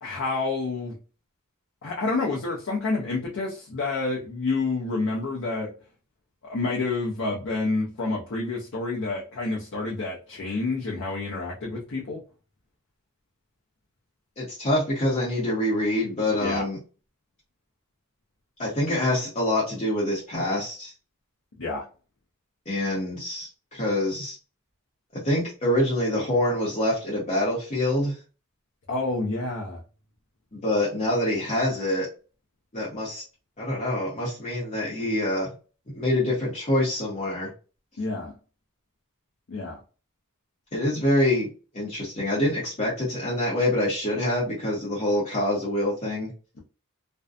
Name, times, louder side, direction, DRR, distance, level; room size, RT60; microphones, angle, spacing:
voice 1, 0.0-1.0 1.8-5.7 6.4-12.2 16.4-16.6 21.6-21.8 28.9-29.8 38.0-38.3 39.5-39.8, left 3 dB, 60° left, -3 dB, 0.6 m, -28 dB
voice 2, 14.4-16.8 18.6-20.9 22.7-24.3 25.1-28.1 30.6-32.1 32.7-33.2 33.6-35.5 35.9-37.5 40.7-41.5 41.7-46.3, left 1 dB, 30° left, -7 dB, 0.9 m, -25 dB
2.6 x 2.2 x 2.3 m, 0.35 s
head